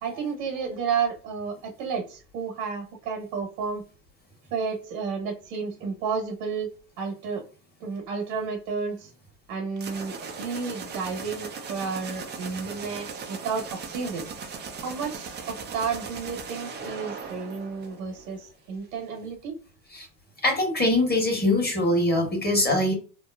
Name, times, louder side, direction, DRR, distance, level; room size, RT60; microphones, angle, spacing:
voice 1, 0.0-3.9 4.5-7.4 7.8-9.1 9.5-14.3 14.8-19.6, right 5 dB, 75° right, 2 dB, 1.3 m, -32 dB
sound 1, 9.8-18.4, right 5 dB, 20° right, 0.5 m, -38 dB
voice 2, 20.4-22.9, left 1 dB, 20° left, 1 dB, 1.3 m, -22 dB
2.8 x 2.0 x 2.4 m, 0.36 s
hypercardioid pair, 80°, 48 cm